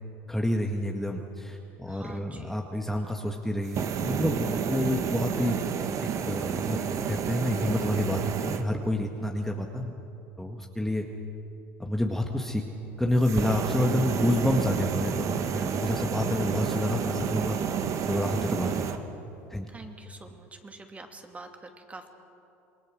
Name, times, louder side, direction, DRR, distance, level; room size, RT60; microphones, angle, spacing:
voice 1, 0.3-5.6 6.0-9.9 10.4-11.1 11.8-12.6 13.0-17.6 18.0-18.8 19.5-19.7, left 1 dB, 5° left, 1 dB, 1.8 m, -28 dB
voice 2, 1.9-2.6 19.7-22.1, right 3 dB, 20° right, 4 dB, 2.6 m, -46 dB
sound 1, 3.6-8.6 13.2-19.0, right 7 dB, 45° right, 1.6 m, -30 dB
27.5 x 20.5 x 6.4 m, 2.7 s
hypercardioid pair, 80°, 7 cm